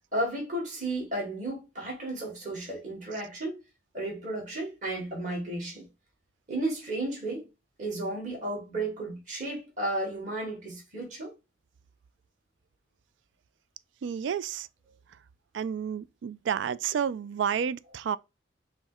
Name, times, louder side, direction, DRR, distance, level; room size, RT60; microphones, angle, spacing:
voice 1, 0.1-3.6 3.9-5.9 6.5-7.5 7.8-11.3, right 1 dB, 40° right, 2.2 m, -33 dB
voice 2, 14.0-14.7 15.5-18.2, right 8 dB, 85° right, 0.3 m, -30 dB
5.7 x 2.1 x 4.2 m
head